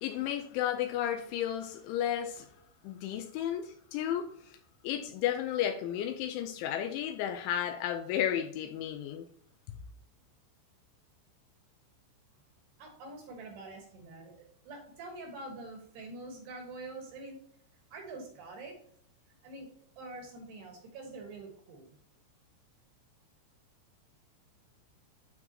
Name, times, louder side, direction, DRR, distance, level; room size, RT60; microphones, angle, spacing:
voice 1, 0.0-2.5 2.8-4.6 4.8-9.3 9.7-9.8, left 10 dB, 85° left, 5 dB, 2.8 m, -33 dB
voice 2, 12.8-17.4 17.9-18.8 19.3-19.7 20.0-22.0, right 2 dB, 65° right, 2 dB, 3.0 m, -45 dB
12.0 x 4.6 x 2.9 m, 0.66 s
omnidirectional pair, 5.8 m